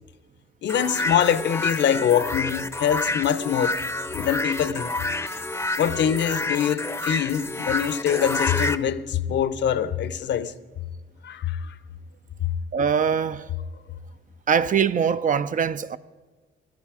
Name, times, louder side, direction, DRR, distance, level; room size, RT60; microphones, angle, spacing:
voice 1, 0.6-3.8 4.1-5.0 5.8-10.5 11.2-11.7, left 9 dB, 65° left, 0.8 m, -24 dB
sound 1, 0.7-8.8, left 2 dB, 10° left, 0.7 m, -28 dB
voice 2, 12.7-13.5 14.5-16.0, right 7 dB, 40° right, 0.5 m, -22 dB
16.0 x 12.5 x 4.9 m
cardioid pair, 90°, 20 cm